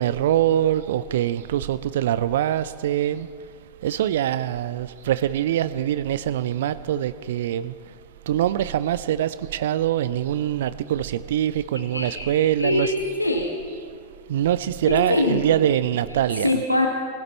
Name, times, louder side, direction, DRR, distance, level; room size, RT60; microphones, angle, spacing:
voice 1, 0.0-3.3 3.8-8.0 8.3-12.9 14.3-16.6, right 11 dB, 60° right, 16 dB, 0.4 m, -24 dB
voice 2, 11.9-13.5 14.9-15.4 16.4-16.9, left 2 dB, 85° left, 3 dB, 1.2 m, -23 dB
20.5 x 16.0 x 4.2 m, 2.2 s
figure-of-eight pair, 90°, 0 cm